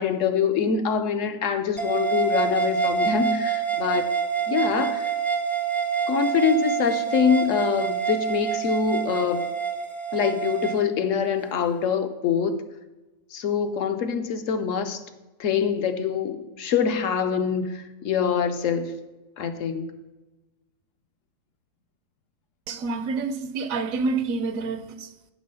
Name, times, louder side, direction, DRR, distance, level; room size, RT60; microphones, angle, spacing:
voice 1, 0.0-4.1 4.5-5.1 6.1-9.5 10.1-12.6 13.3-15.0 15.4-18.9 19.4-19.9, left 7 dB, 65° left, 1.0 m, -24 dB
sound 1, 1.8-10.8, right 6 dB, ahead, 0.3 m, -26 dB
voice 2, 22.7-25.3, right 4 dB, 70° right, 1.0 m, -28 dB
9.5 x 3.7 x 6.8 m
omnidirectional pair, 1.6 m